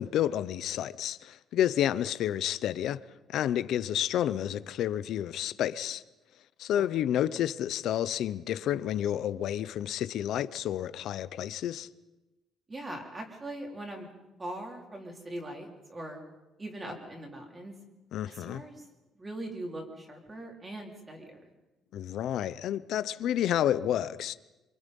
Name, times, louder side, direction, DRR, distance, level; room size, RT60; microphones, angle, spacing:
voice 1, 0.0-3.0 3.3-6.0 6.6-11.9 18.1-18.6 21.9-24.3, left 11 dB, 55° left, 0.8 m, -30 dB
voice 2, 12.7-14.1 14.4-16.2 16.6-17.7 18.3-18.9 19.2-21.4, right 1 dB, 15° right, 3.8 m, -41 dB
27.0 x 25.0 x 5.5 m
cardioid pair, 175°, 0 cm